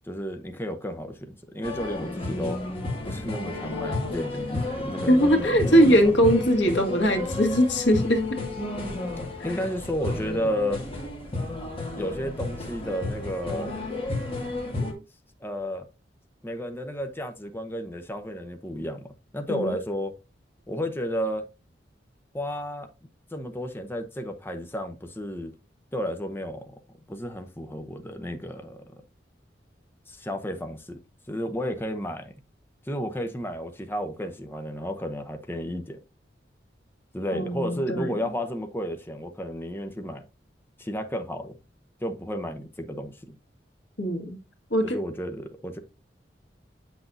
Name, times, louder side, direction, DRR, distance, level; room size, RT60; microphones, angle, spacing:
voice 1, 0.0-2.6 3.0-6.0 9.4-10.8 11.9-13.7 15.4-15.9 16.4-19.0 19.3-20.1 20.7-21.5 22.3-22.9 23.3-25.5 25.9-26.7 27.1-29.0 30.1-31.0 31.3-32.3 32.9-36.0 37.1-40.2 40.8-41.6 42.0-43.3 44.8-45.8, equal, 15° left, 0.7 m, -32 dB
sound 1, 1.6-14.9, left 2 dB, 35° left, 2.1 m, -32 dB
voice 2, 5.1-8.4 19.5-19.8 37.3-38.1 44.0-44.4 44.7-45.0, equal, 80° left, 1.6 m, -21 dB
8.3 x 6.1 x 2.6 m
head